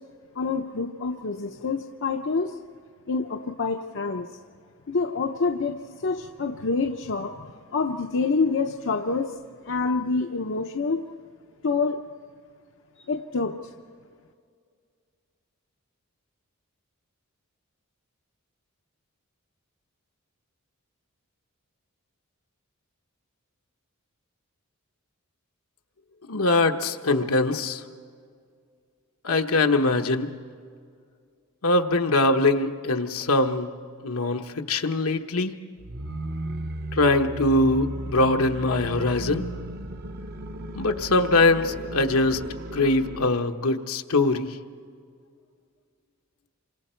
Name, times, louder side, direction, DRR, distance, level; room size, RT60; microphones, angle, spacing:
voice 1, 0.4-2.6 3.1-4.3 4.9-9.3 9.7-11.0 11.6-12.0 13.1-13.6, left 4 dB, 60° left, 4 dB, 0.8 m, -27 dB
voice 2, 26.3-27.8 29.2-30.3 31.6-33.7 34.0-35.5 36.9-39.4 40.7-42.4 42.7-44.6, left 2 dB, 75° left, 5 dB, 1.1 m, -22 dB
sound 1, 35.8-43.5, right 1 dB, 45° right, 0.9 m, -35 dB
28.0 x 25.5 x 4.5 m, 2.2 s
head